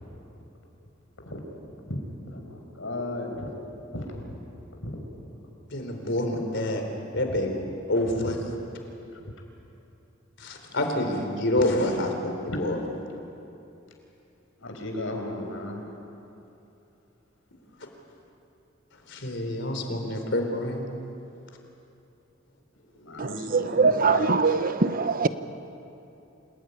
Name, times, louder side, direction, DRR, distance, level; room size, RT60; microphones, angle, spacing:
voice 1, 2.3-3.5 3.9-4.1 4.8-4.9 5.9-6.0 7.3-7.4 9.1-9.2 12.5-12.6 14.6-15.8 23.0-24.6, left 1 dB, 80° left, 5.4 m, -35 dB
voice 2, 5.7-6.8 7.1-7.6 7.9-8.5 10.4-12.8 19.1-20.9, left 1 dB, 60° left, 4.1 m, -27 dB
voice 3, 23.2-25.3, right 4 dB, 45° right, 0.9 m, -23 dB
28.5 x 19.0 x 9.9 m
head